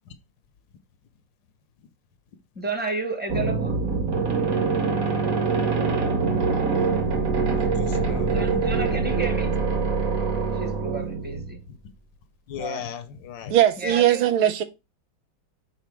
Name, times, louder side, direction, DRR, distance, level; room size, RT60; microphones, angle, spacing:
voice 1, 2.5-3.8 8.2-9.6 10.5-11.6 12.6-12.8 13.8-14.2, right 3 dB, 5° right, 0.9 m, -32 dB
sound 1, 3.3-11.6, right 4 dB, 50° right, 1.4 m, -24 dB
voice 2, 5.5-5.9 7.6-8.8 11.7-11.8 12.5-13.5, left 8 dB, 70° left, 1.3 m, -38 dB
voice 3, 13.5-14.6, right 12 dB, 90° right, 1.7 m, -19 dB
5.7 x 4.4 x 4.6 m
omnidirectional pair, 2.2 m